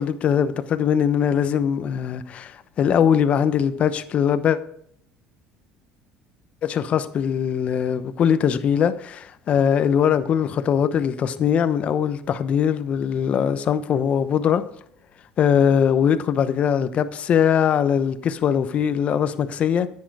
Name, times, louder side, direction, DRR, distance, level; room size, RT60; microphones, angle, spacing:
voice 1, 0.0-4.6 6.6-14.6 15.4-19.9, left 8 dB, 45° left, 0.9 m, -21 dB
10.5 x 8.7 x 4.8 m
cardioid pair, 120°, 3 cm